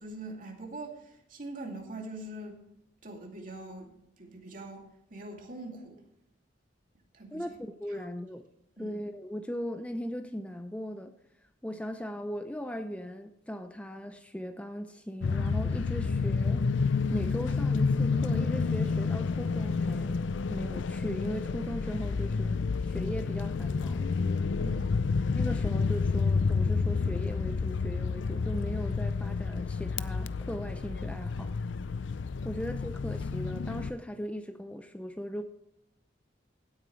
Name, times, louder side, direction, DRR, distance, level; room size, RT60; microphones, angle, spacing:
voice 1, 0.0-2.6 3.0-6.0 7.1-7.5 8.8-9.0 24.6-25.0, right 2 dB, 45° right, 1 dB, 2.5 m, -43 dB
voice 2, 7.3-8.4 8.8-11.1 11.6-16.7 17.1-20.2 20.5-22.6 22.8-24.0 25.3-31.5 32.4-35.4, equal, 5° left, 7 dB, 0.6 m, -38 dB
sound 1, 15.2-33.9, left 4 dB, 80° left, 0.5 m, -29 dB
16.0 x 8.8 x 3.2 m, 0.81 s
head